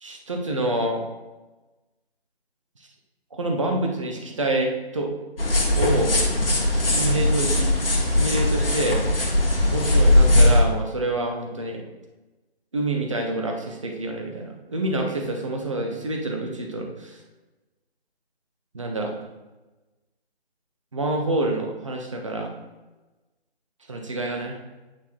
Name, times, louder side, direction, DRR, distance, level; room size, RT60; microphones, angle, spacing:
voice 1, 0.0-1.0 3.3-5.1 5.8-6.1 6.7-7.7 8.0-9.0 9.7-11.8 12.7-17.2 18.7-19.1 20.9-22.5 23.9-24.6, right 2 dB, 30° right, 2 dB, 0.9 m, -27 dB
sound 1, 5.4-10.6, left 1 dB, 60° left, 1.7 m, -19 dB
8.8 x 3.8 x 4.3 m, 1.1 s
figure-of-eight pair, 160°, 32 cm